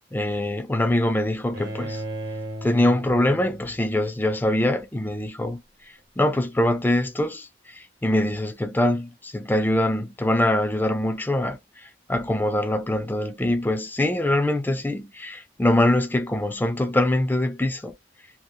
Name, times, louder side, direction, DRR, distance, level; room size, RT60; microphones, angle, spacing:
voice 1, 0.1-2.0 2.6-5.6 6.2-7.5 7.7-11.6 12.1-17.9, left 1 dB, 10° left, 0.4 m, -23 dB
Bowed string instrument, 1.5-4.6, right 1 dB, 60° right, 1.0 m, -36 dB
2.8 x 2.1 x 2.5 m
head